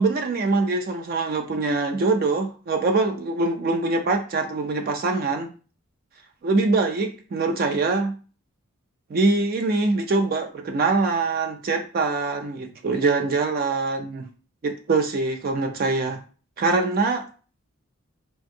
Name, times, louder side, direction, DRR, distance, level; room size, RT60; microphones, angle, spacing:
voice 1, 0.0-5.5 6.4-8.1 9.1-14.2 14.6-16.2 16.6-17.3, right 3 dB, 45° right, 0.3 m, -23 dB
3.5 x 2.5 x 2.6 m
head